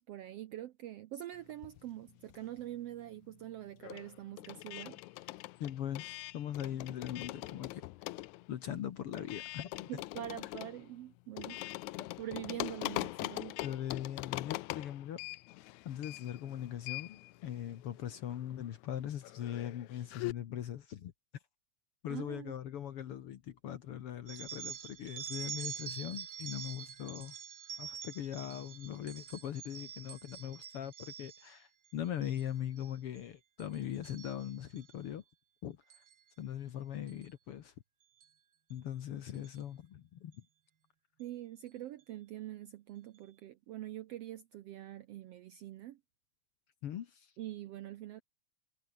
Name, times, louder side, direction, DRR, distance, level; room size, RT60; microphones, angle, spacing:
voice 1, 0.0-5.4 9.9-11.7 12.2-13.6 22.1-22.5 41.2-46.0 47.4-48.2, right 13 dB, 75° right, 1.5 m, -44 dB
sound 1, 1.5-2.8 3.0-20.3, left 19 dB, 80° left, 1.9 m, -43 dB
voice 2, 5.6-7.8 8.5-9.9 12.0-12.1 13.6-15.2 15.8-21.1 22.0-27.3 27.8-35.2 35.6-35.8 36.4-37.7 38.7-40.4 46.8-47.3, left 10 dB, 60° left, 1.7 m, -40 dB
sound 2, 24.3-31.6 32.1-32.4 32.8-33.2 33.6-34.9 35.9-36.1 37.1-37.2 38.2-38.3 38.7-38.8 39.3-39.6, right 8 dB, 50° right, 1.4 m, -46 dB
omnidirectional pair, 3.6 m